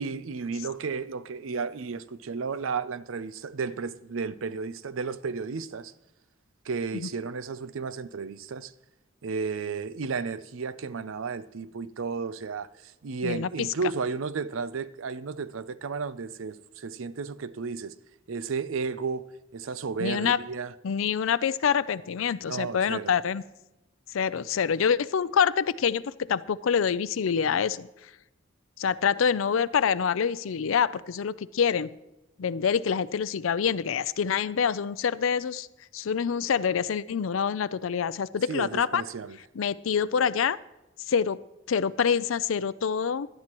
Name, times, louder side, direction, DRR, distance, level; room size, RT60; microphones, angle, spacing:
voice 1, 0.0-5.9 6.7-8.7 9.2-17.9 18.3-19.2 19.5-20.7 22.5-23.1 38.5-39.4, right 5 dB, 85° right, 0.5 m, -33 dB
voice 2, 20.0-20.4 20.8-23.4 24.1-27.9 28.8-31.9 32.4-35.7 35.9-39.0 39.5-40.6 41.1-41.4 41.7-43.3, left 7 dB, 85° left, 0.5 m, -26 dB
17.0 x 11.5 x 3.0 m
head